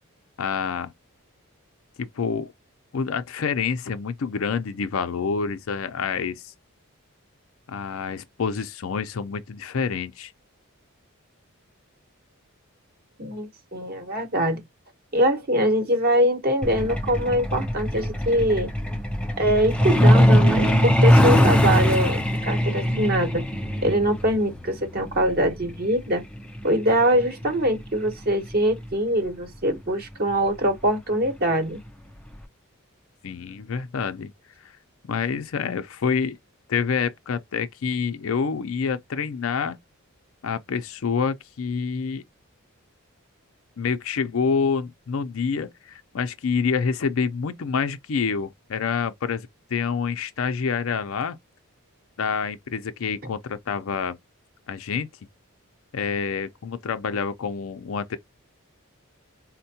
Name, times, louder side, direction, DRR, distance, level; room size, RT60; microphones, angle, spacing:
voice 1, 0.4-0.9 2.0-2.5 2.9-6.5 7.7-10.3 33.2-34.3 34.6-34.7 35.1-36.4 36.7-39.8 40.4-42.2 43.8-51.4 52.2-54.2 54.7-55.1 55.9-58.2, left 5 dB, 65° left, 0.5 m, -27 dB
voice 2, 13.2-14.6 15.1-18.7 19.4-23.4 23.8-26.2 26.6-31.8, equal, 45° right, 1.0 m, -23 dB
Truck, 16.6-28.9 30.1-30.3 30.7-30.9 31.3-31.5 31.9-32.0 32.4-32.5, equal, 5° left, 0.4 m, -21 dB
4.4 x 2.1 x 2.7 m
head